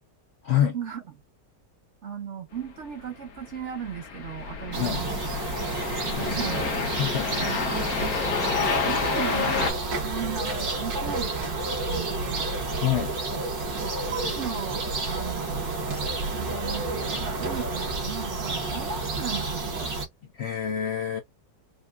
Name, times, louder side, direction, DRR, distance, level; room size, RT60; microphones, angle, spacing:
voice 1, 0.4-0.8 4.8-5.0 6.2-6.5 7.0-7.3 12.8-13.1 20.3-21.2, left 10 dB, 75° left, 0.6 m, -26 dB
voice 2, 2.0-5.3 6.2-6.7 7.4-7.8 8.6-12.5 13.3-19.9, right 7 dB, 50° right, 0.9 m, -36 dB
sound 1, 3.1-9.7, left 5 dB, 55° left, 1.4 m, -29 dB
sound 2, 4.7-20.1, right 3 dB, 80° right, 2.3 m, -30 dB
5.2 x 2.3 x 2.3 m
omnidirectional pair, 1.9 m